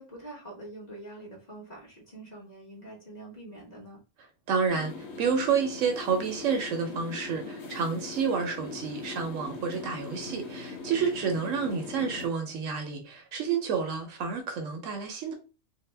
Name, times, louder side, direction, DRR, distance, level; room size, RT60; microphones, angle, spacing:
voice 1, 0.0-4.0, right 1 dB, 35° left, 1.1 m, -45 dB
voice 2, 4.5-4.9 5.2-15.3, right 6 dB, 70° right, 0.9 m, -29 dB
sound 1, 4.7-12.3, left 3 dB, 75° left, 1.1 m, -41 dB
2.7 x 2.1 x 3.2 m
omnidirectional pair, 1.5 m